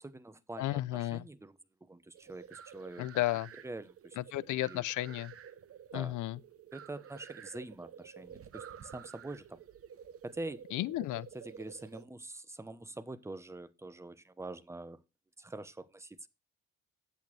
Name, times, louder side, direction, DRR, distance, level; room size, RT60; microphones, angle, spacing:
voice 1, 0.0-1.6 1.8-3.1 3.6-4.2 4.5-4.8 5.9-6.2 6.7-9.6 10.2-10.6 11.3-15.0 15.4-16.3, right 2 dB, 10° right, 0.8 m, -45 dB
voice 2, 0.6-1.3 3.0-3.5 4.2-5.3 5.9-6.4 10.7-11.3, left 16 dB, 80° left, 0.6 m, -33 dB
sound 1, 2.1-12.0, right 8 dB, 50° right, 0.8 m, -51 dB
10.5 x 8.5 x 3.2 m
cardioid pair, 90°, 30 cm